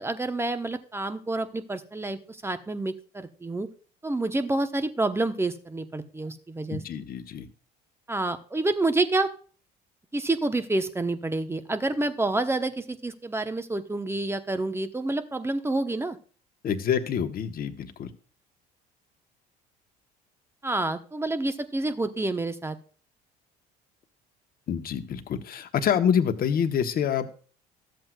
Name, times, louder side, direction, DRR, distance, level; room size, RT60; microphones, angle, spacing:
voice 1, 0.0-3.7 4.0-6.8 8.1-9.3 10.1-16.2 20.6-22.8, right 2 dB, 10° right, 9 dB, 1.0 m, -28 dB
voice 2, 6.7-7.5 16.6-18.1 24.7-27.3, left 8 dB, 50° left, 8 dB, 1.1 m, -26 dB
13.0 x 7.8 x 2.4 m, 0.40 s
hypercardioid pair, 70°, 20 cm